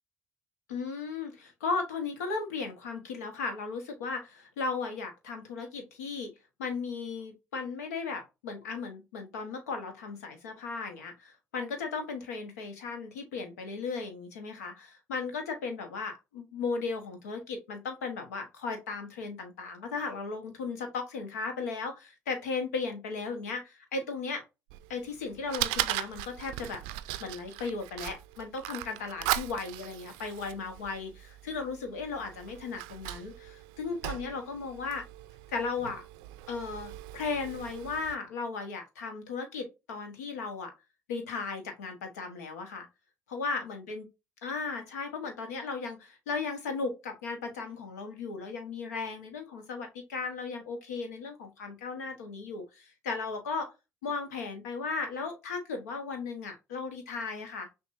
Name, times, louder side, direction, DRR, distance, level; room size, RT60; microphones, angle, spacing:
voice 1, 0.7-6.3 6.6-24.4 24.9-26.8 27.2-35.0 35.5-36.0 36.5-40.7 41.1-42.9 43.3-44.1 44.4-53.7 54.0-57.7, left 4 dB, 90° left, 5 dB, 1.1 m, -36 dB
Fire, 24.7-38.1, right 16 dB, 75° right, 0.4 m, -38 dB
6.1 x 2.5 x 2.5 m, 0.25 s
hypercardioid pair, 55°, 8 cm